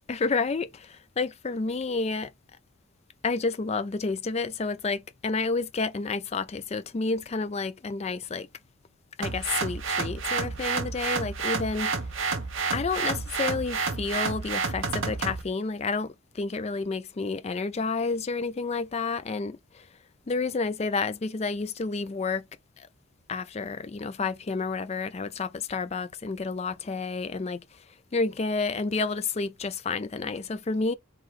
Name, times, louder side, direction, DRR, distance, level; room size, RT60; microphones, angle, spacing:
voice 1, 0.1-2.3 3.2-8.5 9.2-11.9 12.7-19.9 20.3-22.4 22.8-22.9 23.3-27.6 28.1-30.9, left 4 dB, 30° left, 0.4 m, -30 dB
sound 1, 9.2-15.4, right 4 dB, 60° right, 0.9 m, -30 dB
3.8 x 3.1 x 4.6 m
head